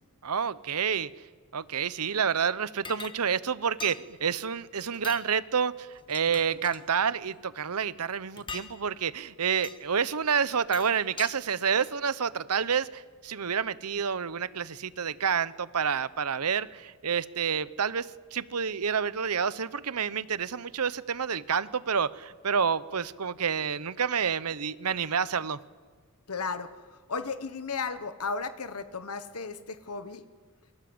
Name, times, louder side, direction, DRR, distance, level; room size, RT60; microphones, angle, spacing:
voice 1, 0.2-1.1 1.5-25.6, right 6 dB, 80° right, 17 dB, 0.9 m, -29 dB
sound 1, 2.8-3.2 3.8-4.0 4.9-5.2 5.9-6.8 8.4-8.7 9.6-9.8 10.5-11.3, left 5 dB, 20° left, 1.6 m, -41 dB
voice 2, 26.3-26.7 27.1-30.2, left 4 dB, 75° left, 11 dB, 1.3 m, -34 dB
27.5 x 24.5 x 8.0 m, 1.5 s
head